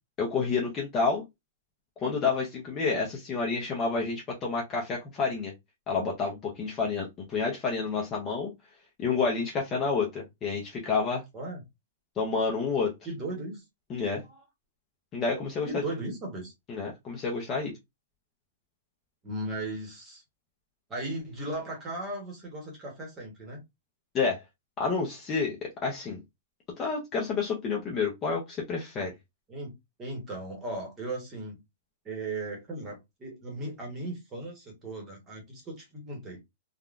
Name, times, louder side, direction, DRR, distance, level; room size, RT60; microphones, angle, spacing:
voice 1, 0.2-1.2 2.0-5.5 5.9-8.5 9.0-11.2 12.2-13.0 13.9-14.2 15.1-15.8 16.7-17.7 24.1-24.4 24.8-26.2 26.8-29.1, left 4 dB, 15° left, 0.5 m, -29 dB
voice 2, 13.0-13.6 14.3-14.4 15.6-16.5 19.2-20.2 20.9-23.6 29.5-31.6 32.0-36.4, right 2 dB, 15° right, 1.0 m, -37 dB
3.5 x 2.1 x 2.4 m
hypercardioid pair, 180°, 0 cm